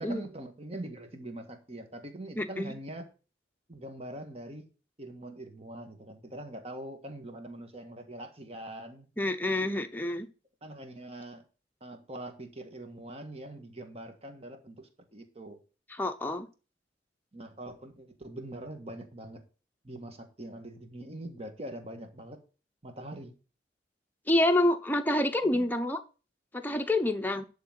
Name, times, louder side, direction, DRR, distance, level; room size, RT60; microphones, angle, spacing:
voice 1, 0.0-3.1 3.7-4.7 5.0-9.1 10.6-11.4 11.8-15.6 17.3-19.4 19.8-22.4 22.8-23.3 25.5-25.7, right 1 dB, 35° right, 1.6 m, -43 dB
voice 2, 2.4-2.7 9.2-10.3 15.9-16.5 24.3-26.0 26.5-27.5, left 1 dB, 10° left, 0.8 m, -27 dB
11.0 x 3.9 x 7.5 m
head